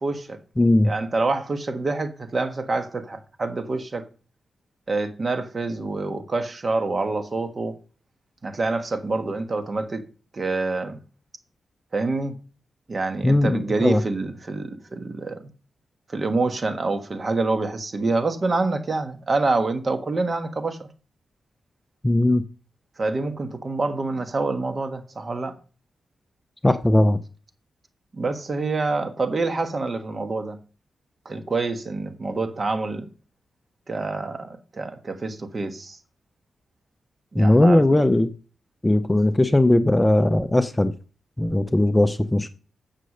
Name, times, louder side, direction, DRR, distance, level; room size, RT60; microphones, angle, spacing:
voice 1, 0.0-0.4 0.8-4.0 4.9-7.7 8.4-10.0 10.3-11.0 11.9-12.4 12.9-15.5 16.1-20.9 23.0-25.5 28.1-30.6 31.2-33.1 33.9-36.0 37.3-38.0, right 3 dB, 40° right, 1.4 m, -26 dB
voice 2, 0.6-0.9 13.2-14.0 22.0-22.4 26.6-27.2 37.3-38.3 38.8-40.9 41.4-42.5, left 1 dB, 15° left, 0.6 m, -18 dB
9.7 x 6.7 x 6.4 m
wide cardioid pair, 110°, 0 cm